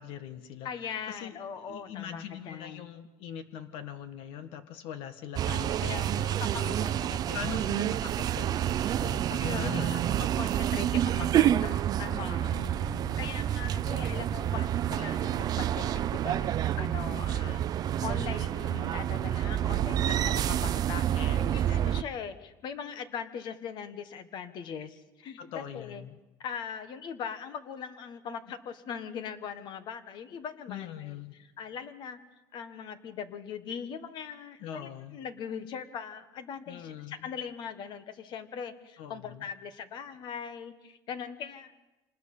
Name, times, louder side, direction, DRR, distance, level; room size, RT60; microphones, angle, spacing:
voice 1, 0.0-1.4 1.7-6.8 7.3-9.9 12.5-13.2 21.1-21.5 21.8-22.1 25.4-26.2 30.7-31.3 34.6-35.2 36.7-37.3 39.0-39.5, left 9 dB, 70° left, 10 dB, 1.6 m, -42 dB
voice 2, 0.6-2.9 5.8-7.7 9.4-12.6 13.2-26.0 26.4-31.1 31.6-32.2 32.5-41.7, left 7 dB, 50° left, 11 dB, 1.5 m, -40 dB
sound 1, 5.4-22.0, right 11 dB, 40° right, 0.6 m, -28 dB
sound 2, 8.2-21.1, left 2 dB, 20° left, 6.3 m, -54 dB
26.5 x 20.0 x 5.6 m, 1.1 s
cardioid pair, 135°, 10 cm